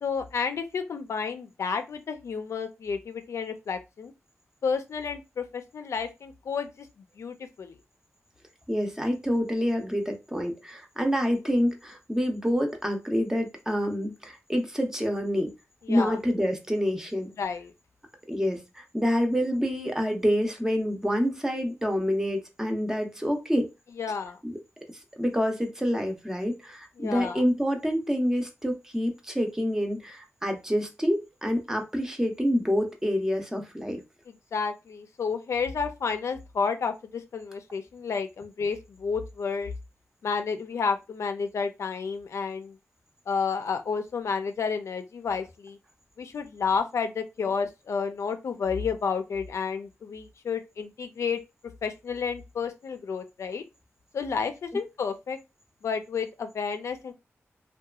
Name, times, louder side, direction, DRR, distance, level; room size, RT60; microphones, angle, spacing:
voice 1, 0.0-4.1 4.6-6.9 7.2-7.7 15.8-16.2 17.4-17.7 24.0-24.4 27.0-27.4 34.5-39.7 40.2-42.8 43.3-45.8 46.2-51.4 51.8-53.6 54.1-55.4 55.8-57.1, left 5 dB, 80° left, 0.4 m, -31 dB
voice 2, 8.7-15.5 15.9-17.3 18.3-23.7 24.4-24.6 25.2-34.0, equal, 10° right, 0.6 m, -27 dB
2.7 x 2.2 x 2.3 m
cardioid pair, 70°, 5 cm